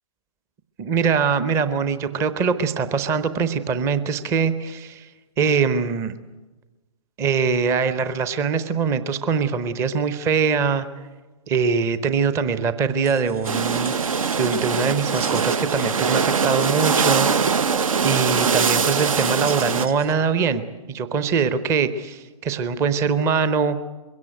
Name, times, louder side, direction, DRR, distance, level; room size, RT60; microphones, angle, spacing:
voice 1, 0.8-5.1 5.4-6.1 7.2-10.9 11.5-13.9 14.4-17.6 18.0-20.6 20.9-23.8, right 5 dB, 15° right, 13 dB, 0.8 m, -22 dB
sound 1, 13.0-20.1, right 3 dB, 85° right, 4.3 m, -40 dB
sound 2, 13.4-19.9, right 5 dB, 65° right, 0.9 m, -22 dB
22.0 x 17.0 x 9.1 m, 1.2 s
figure-of-eight pair, 135°, 19 cm